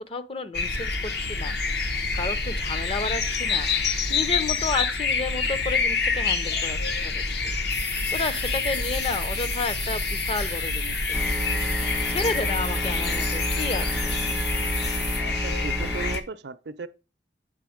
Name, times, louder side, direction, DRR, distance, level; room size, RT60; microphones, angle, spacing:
voice 1, 0.1-1.5 2.1-3.7 4.1-14.2, left 3 dB, 30° left, 0.6 m, -32 dB
sound 1, 0.5-16.2, left 4 dB, 65° left, 0.9 m, -27 dB
sound 2, 7.7-15.2, left 3 dB, 85° left, 3.0 m, -34 dB
sound 3, 11.1-16.2, right 1 dB, 10° right, 0.4 m, -31 dB
voice 2, 15.4-16.9, right 4 dB, 65° right, 0.5 m, -36 dB
8.2 x 3.7 x 5.0 m
head